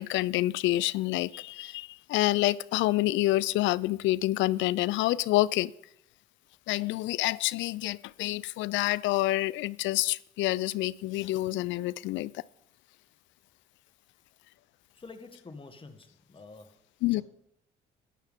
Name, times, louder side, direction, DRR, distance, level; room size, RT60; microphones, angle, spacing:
voice 1, 0.0-5.7 6.7-12.3 17.0-17.2, left 17 dB, 70° left, 0.4 m, -27 dB
voice 2, 14.9-16.8 17.1-17.2, left 3 dB, 25° left, 1.5 m, -48 dB
12.5 x 9.3 x 3.6 m
supercardioid pair, 65°, 20 cm